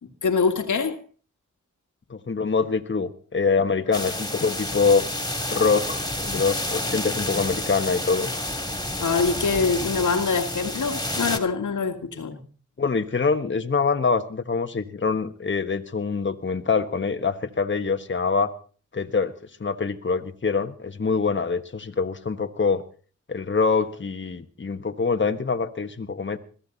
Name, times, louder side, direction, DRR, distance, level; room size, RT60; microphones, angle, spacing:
voice 1, 0.0-1.0 9.0-12.4, left 5 dB, 80° left, 2.0 m, -24 dB
voice 2, 2.1-5.1 5.5-8.3 12.8-18.5 18.9-19.3 19.6-22.8 23.3-26.4, left 4 dB, 40° left, 1.4 m, -24 dB
sound 1, 3.9-11.4, left 1 dB, 15° left, 3.0 m, -29 dB
21.5 x 14.0 x 4.1 m
cardioid pair, 45°, 30 cm